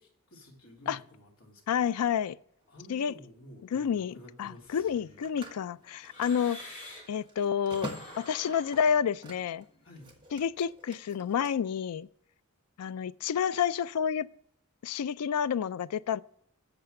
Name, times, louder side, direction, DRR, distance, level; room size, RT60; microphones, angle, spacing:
voice 1, 0.0-1.9 2.7-5.5 9.8-10.1, equal, 65° left, 2.6 m, -52 dB
voice 2, 1.7-2.4 2.9-3.1 3.7-6.6 7.1-9.6 10.3-12.1 12.8-14.3 14.8-16.2, left 8 dB, 85° left, 0.4 m, -29 dB
Telephone, 2.6-2.8 4.8-9.6 9.9-11.5, equal, 20° right, 1.3 m, -46 dB
sound 1, 4.6-7.2 7.6-10.6, left 1 dB, 35° left, 3.8 m, -50 dB
8.1 x 6.8 x 6.4 m
head